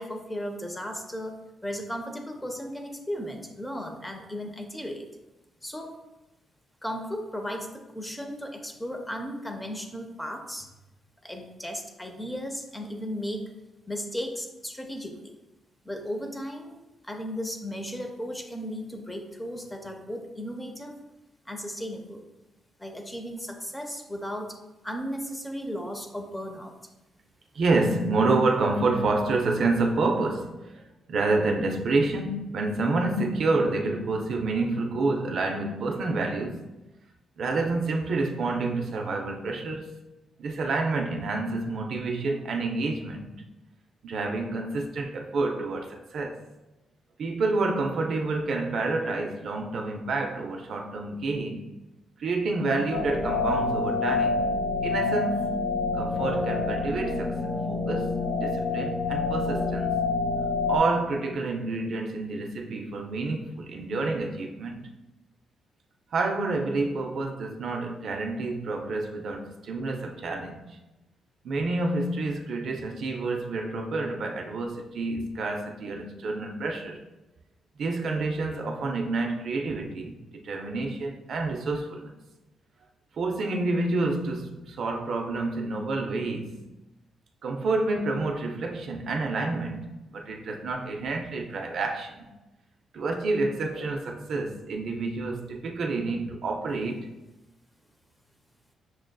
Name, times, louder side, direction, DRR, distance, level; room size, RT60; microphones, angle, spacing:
voice 1, 0.0-1.3 1.6-5.1 5.6-5.9 6.8-7.7 7.9-10.7 11.2-13.5 13.9-15.4 15.8-16.8 17.0-20.9 21.5-22.2 22.8-24.6 24.8-26.8, equal, 10° left, 0.4 m, -35 dB
voice 2, 27.5-30.8 31.1-36.6 37.4-40.0 40.4-43.4 44.0-46.4 47.2-51.8 52.2-57.4 57.7-59.9 60.7-64.9 66.1-70.8 71.4-77.0 77.8-82.1 83.2-86.6 87.4-92.3 92.9-97.1, right 3 dB, 60° right, 0.4 m, -28 dB
sound 1, 52.9-60.8, left 3 dB, 65° left, 1.0 m, -27 dB
6.0 x 2.5 x 2.2 m
cardioid pair, 135°, 0 cm